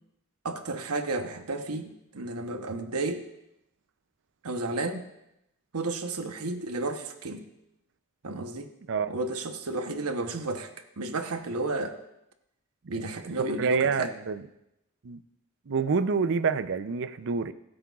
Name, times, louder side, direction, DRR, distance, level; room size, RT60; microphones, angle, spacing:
voice 1, 0.4-3.3 4.4-5.1 5.7-7.4 8.2-8.7 9.1-10.7 11.0-12.0 12.9-14.1, right 2 dB, 85° right, 6 dB, 1.0 m, -32 dB
voice 2, 13.4-14.4 15.0-15.2 15.7-17.5, right 5 dB, 60° right, 12 dB, 0.5 m, -27 dB
19.5 x 8.8 x 2.4 m, 0.85 s
head